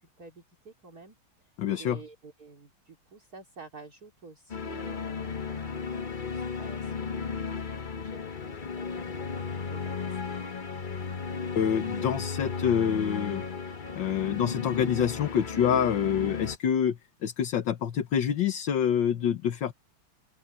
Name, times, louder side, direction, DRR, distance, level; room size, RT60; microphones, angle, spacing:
voice 1, 0.2-1.2 1.8-7.3 8.0-10.3, right 3 dB, 45° right, 3.6 m, -50 dB
voice 2, 1.6-2.0 11.6-13.4 14.0-19.7, left 8 dB, 65° left, 1.8 m, -27 dB
sound 1, 4.5-16.6, left 5 dB, 50° left, 0.6 m, -35 dB
open air
omnidirectional pair, 2.3 m